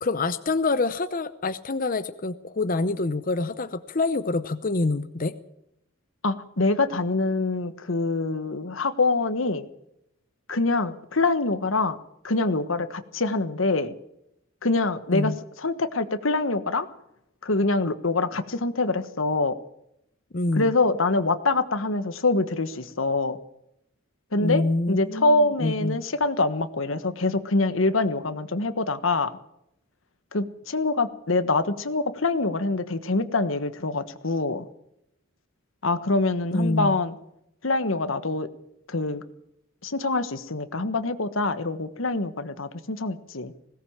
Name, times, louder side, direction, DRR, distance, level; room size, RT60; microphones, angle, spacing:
voice 1, 0.0-5.3 15.1-15.4 20.3-20.7 24.4-26.0 36.5-37.0, left 3 dB, 45° left, 12 dB, 0.8 m, -26 dB
voice 2, 6.2-9.7 10.5-12.0 12.2-13.9 14.6-15.3 15.6-16.9 17.4-19.5 20.5-23.4 24.3-29.3 30.3-34.6 35.8-37.1 37.6-38.5 38.9-39.2 39.8-43.5, left 3 dB, 85° left, 12 dB, 1.4 m, -25 dB
20.5 x 17.5 x 7.4 m, 0.79 s
head